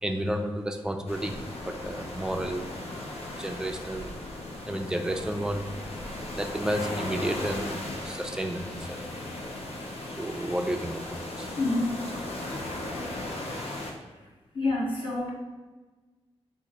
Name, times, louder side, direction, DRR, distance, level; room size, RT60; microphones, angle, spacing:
voice 1, 0.0-3.0 3.4-4.1 4.7-5.7 6.3-9.0 10.1-11.5, right 1 dB, 5° right, 4 dB, 0.5 m, -32 dB
sound 1, 1.1-13.9, left 1 dB, 75° left, 0.7 m, -37 dB
voice 2, 11.6-12.0 14.0-14.1 14.5-15.3, left 2 dB, 55° left, -4 dB, 1.0 m, -27 dB
4.9 x 2.5 x 4.1 m, 1.3 s
cardioid pair, 75°, 10 cm